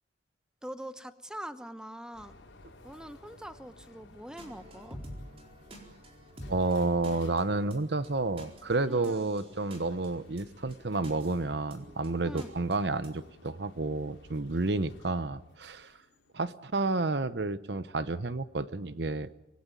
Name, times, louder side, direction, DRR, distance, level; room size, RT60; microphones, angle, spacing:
voice 1, 0.6-2.3 2.8-5.0 8.9-9.3 12.2-12.5, equal, 5° right, 10 dB, 1.0 m, -43 dB
sound 1, 2.1-16.7, left 2 dB, 85° left, 4.3 m, -56 dB
sound 2, 4.4-13.3, equal, 30° right, 4.3 m, -50 dB
voice 2, 6.5-15.9 16.3-19.3, right 3 dB, 60° right, 14 dB, 0.9 m, -30 dB
25.5 x 19.0 x 9.1 m, 0.91 s
head